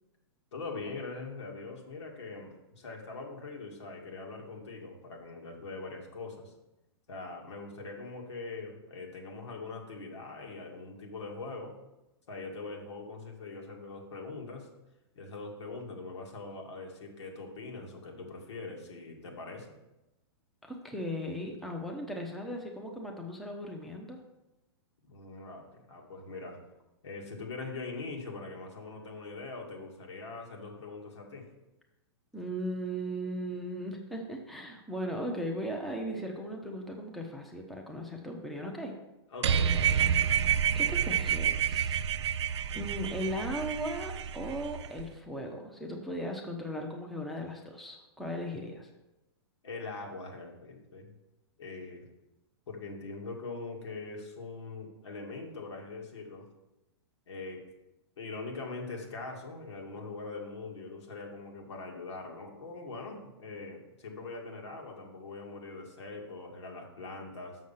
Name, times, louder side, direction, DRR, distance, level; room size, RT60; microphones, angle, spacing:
voice 1, 0.5-6.5 7.1-11.7 12.3-14.7 15.1-19.7 25.0-26.6 27.0-31.5 39.3-40.1 49.6-51.1 51.6-52.1 52.7-56.5 57.3-57.6 58.2-67.6, left 3 dB, 85° left, 0 dB, 2.2 m, -42 dB
voice 2, 20.6-24.2 32.3-38.9 40.7-42.0 42.7-48.9, equal, ahead, 1 dB, 0.8 m, -37 dB
sound 1, 39.4-45.0, right 8 dB, 85° right, 0.5 m, -29 dB
6.5 x 6.2 x 5.7 m, 0.97 s
hypercardioid pair, 150°, 14 cm